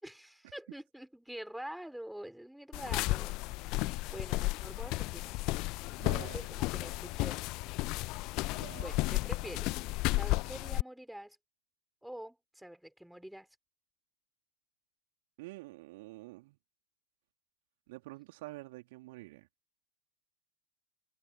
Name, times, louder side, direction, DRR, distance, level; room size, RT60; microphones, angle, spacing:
voice 1, 0.0-3.8 4.1-5.4 6.2-7.5 8.8-9.8 10.1-11.4 12.0-13.5, right 1 dB, ahead, 5.6 m, -46 dB
sound 1, 2.7-10.8, left 22 dB, 40° left, 1.1 m, -33 dB
voice 2, 6.0-6.4 8.5-8.9 15.4-16.6 17.9-19.5, right 21 dB, 50° right, 3.3 m, -47 dB
figure-of-eight pair, 90°, 0 cm